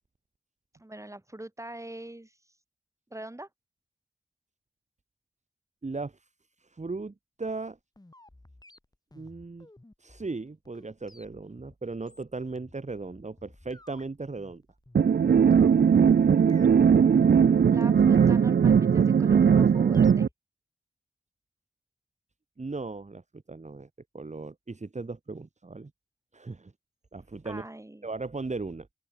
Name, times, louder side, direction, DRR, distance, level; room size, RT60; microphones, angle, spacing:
voice 1, 0.8-2.4 3.1-3.5 16.1-16.8 17.7-20.3 27.4-28.1, right 1 dB, 20° right, 6.5 m, -43 dB
voice 2, 5.8-6.2 6.6-7.8 9.1-9.7 10.0-14.6 22.6-23.9 24.1-25.9 26.3-26.7 27.1-27.6 28.0-28.9, right 3 dB, 45° right, 2.6 m, -37 dB
sound 1, 7.5-20.3, left 1 dB, 25° left, 7.5 m, -55 dB
sound 2, 14.9-20.3, right 7 dB, 70° right, 0.5 m, -19 dB
open air
wide cardioid pair, 85°, 17 cm